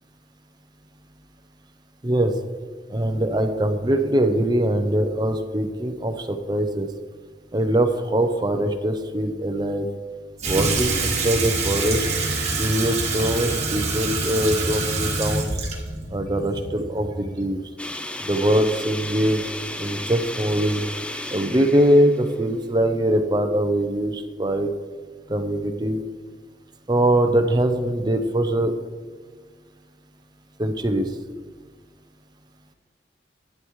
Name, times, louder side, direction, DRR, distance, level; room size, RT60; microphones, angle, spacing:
voice 1, 2.9-6.9 7.5-9.9 10.4-12.0 12.5-15.5 16.1-17.6 18.2-19.4 19.8-20.8 21.3-24.7 25.3-26.0 26.9-28.7 30.6-31.1, right 1 dB, 25° right, 6 dB, 0.7 m, -22 dB
Water tap faucet / Sink (filling or washing), 10.4-17.4, right 3 dB, 40° right, 1.6 m, -26 dB
sound 1, 17.8-23.0, left 1 dB, 5° left, 0.4 m, -34 dB
11.5 x 10.5 x 3.2 m, 1.5 s
head